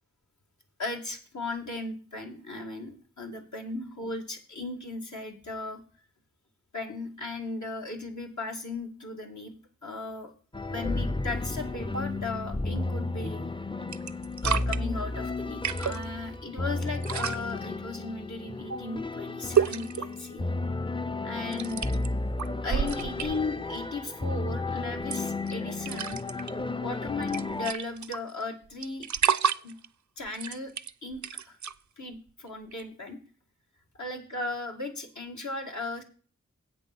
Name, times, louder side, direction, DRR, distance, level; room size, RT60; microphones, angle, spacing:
voice 1, 0.8-5.8 6.7-9.6 9.8-10.3 10.7-13.5 14.4-20.4 21.2-21.8 22.6-26.2 26.8-29.1 29.6-29.8 30.2-30.7 31.0-31.6 32.0-33.2 33.9-36.0, left 2 dB, 80° left, 2 dB, 2.1 m, -36 dB
sound 1, 10.5-27.7, left 2 dB, 20° left, 0.4 m, -33 dB
sound 2, 13.3-13.6 13.9-14.8 15.5-16.0 16.9-17.4 19.6-20.2 21.5-22.1 22.4-23.5 25.0-25.5 25.8-26.5 26.9-27.0 27.2-28.4 28.8-29.9 30.3-31.7 32.7-32.8, right 8 dB, 80° right, 0.5 m, -29 dB
8.2 x 7.0 x 6.0 m, 0.39 s
wide cardioid pair, 50°, 29 cm